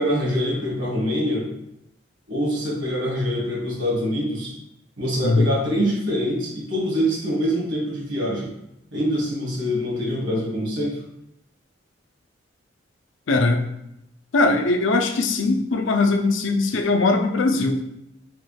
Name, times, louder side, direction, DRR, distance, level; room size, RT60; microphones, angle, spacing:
voice 1, 0.0-1.5 2.3-4.5 5.0-8.5 8.9-11.0, equal, 70° right, -3 dB, 1.5 m, -24 dB
voice 2, 13.3-13.6 14.3-17.8, left 3 dB, 85° left, 4 dB, 0.5 m, -20 dB
4.5 x 2.3 x 3.2 m, 0.83 s
head